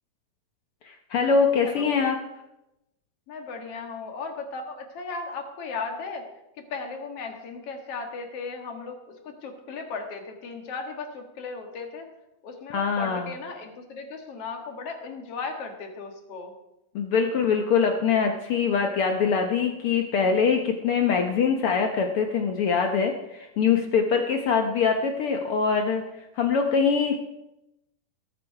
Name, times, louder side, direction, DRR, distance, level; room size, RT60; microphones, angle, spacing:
voice 1, 0.8-2.2 12.7-13.3 16.9-26.0 26.4-27.2, left 5 dB, 85° left, 4 dB, 1.2 m, -23 dB
voice 2, 1.6-2.0 3.3-6.3 6.7-12.1 12.4-16.5, left 4 dB, 50° left, 4 dB, 2.3 m, -36 dB
20.5 x 8.4 x 4.7 m, 0.92 s
omnidirectional pair, 3.8 m